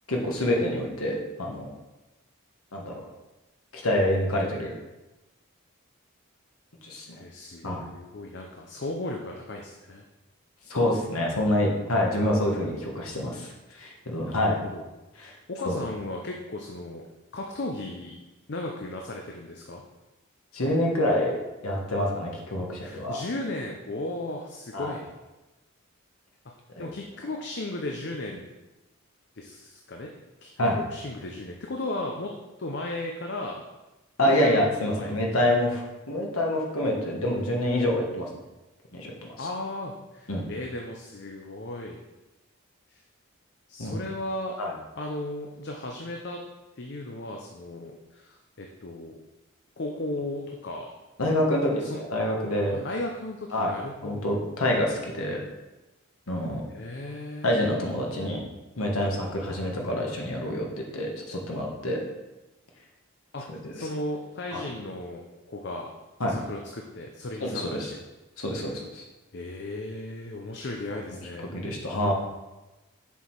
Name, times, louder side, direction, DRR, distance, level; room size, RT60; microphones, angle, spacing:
voice 1, 0.1-1.7 2.7-3.1 3.7-4.7 6.8-7.2 7.6-7.9 10.7-14.6 15.2-15.3 15.6-15.8 20.5-21.4 21.6-23.2 24.7-25.0 26.8-26.9 30.6-30.8 34.2-38.3 38.9-39.1 40.3-40.5 43.8-44.0 44.6-44.7 51.2-52.8 53.5-53.7 54.0-55.4 56.3-56.6 57.4-58.4 58.8-62.0 63.5-63.7 64.5-64.6 66.2-66.3 67.4-67.9 68.4-69.0 71.5-72.1, left 1 dB, 85° left, 0 dB, 1.4 m, -27 dB
voice 2, 7.1-10.0 14.3-14.8 15.5-17.0 17.3-18.2 18.5-19.8 22.8-25.1 26.8-28.4 29.4-30.1 30.4-30.5 30.8-32.3 32.6-33.6 34.2-35.4 39.4-42.0 42.9-43.0 43.7-44.6 45.0-46.4 46.8-49.2 49.8-50.9 51.8-52.0 52.7-54.2 56.7-57.6 63.3-65.9 66.3-68.0 69.3-71.5, left 2 dB, 50° left, 1 dB, 0.6 m, -36 dB
6.8 x 4.6 x 4.6 m, 1.1 s
head